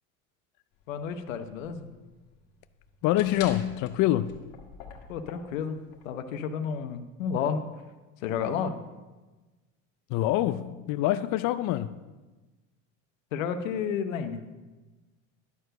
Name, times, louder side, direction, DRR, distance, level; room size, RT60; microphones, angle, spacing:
sound 1, 0.7-6.0, left 6 dB, 70° left, 1.6 m, -47 dB
voice 1, 0.9-1.9 5.1-5.8 6.0-7.6 8.2-8.8 13.3-14.4, left 7 dB, 90° left, 8 dB, 0.9 m, -31 dB
voice 2, 3.0-4.4 10.1-12.0, left 14 dB, 50° left, 12 dB, 0.5 m, -26 dB
11.0 x 4.6 x 6.7 m, 1.2 s
supercardioid pair, 100°, 38 cm